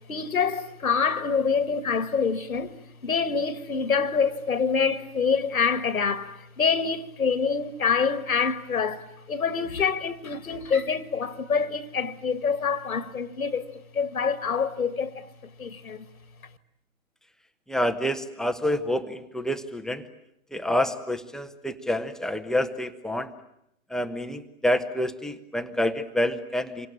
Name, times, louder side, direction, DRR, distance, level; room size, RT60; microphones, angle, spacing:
voice 1, 0.1-16.1, left 5 dB, 75° left, 2.0 m, -26 dB
voice 2, 17.7-20.1 20.5-23.3 23.9-26.9, left 1 dB, ahead, 1.0 m, -28 dB
27.5 x 24.5 x 8.9 m
figure-of-eight pair, 115°, 43 cm